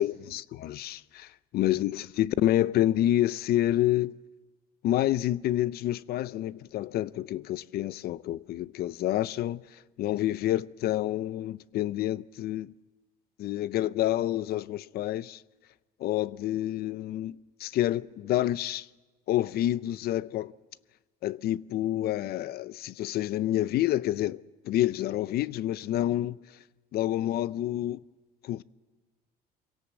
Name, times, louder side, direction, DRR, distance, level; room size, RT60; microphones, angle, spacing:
voice 1, 0.0-4.2 4.8-9.6 10.0-12.7 13.4-15.4 16.0-18.9 19.3-20.5 21.2-26.4 26.9-28.0 28.4-28.6, left 13 dB, 70° left, 0.6 m, -28 dB
25.0 x 17.5 x 7.5 m
cardioid pair, 110°, 17 cm